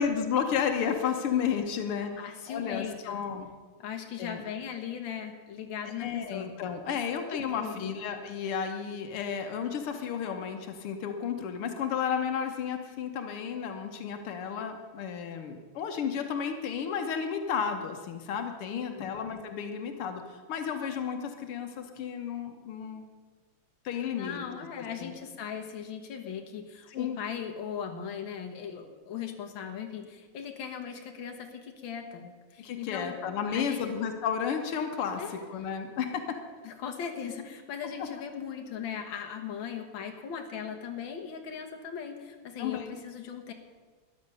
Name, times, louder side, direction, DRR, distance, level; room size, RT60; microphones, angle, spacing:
voice 1, 0.0-3.5 4.2-4.4 5.9-23.0 23.9-24.5 24.8-25.1 26.9-27.2 32.6-36.2 42.6-43.0, left 7 dB, 90° left, 6 dB, 2.0 m, -32 dB
voice 2, 2.2-3.2 3.8-6.5 7.3-7.9 18.7-19.1 24.1-33.2 33.4-34.0 35.2-35.5 36.6-43.5, left 7 dB, 65° left, 4 dB, 2.0 m, -39 dB
13.5 x 11.0 x 6.8 m, 1.4 s
omnidirectional pair, 2.4 m